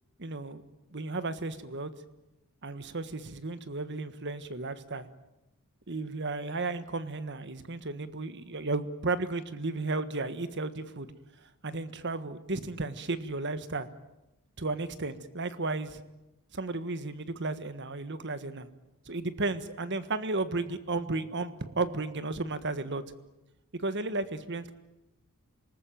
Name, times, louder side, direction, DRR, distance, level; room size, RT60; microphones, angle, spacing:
voice 1, 0.2-0.6 0.9-1.9 2.6-5.1 5.9-11.1 11.6-13.9 14.6-16.0 16.5-18.7 19.1-23.0 23.7-24.7, right 3 dB, 50° right, 12 dB, 1.5 m, -34 dB
27.0 x 19.5 x 9.2 m, 0.98 s
head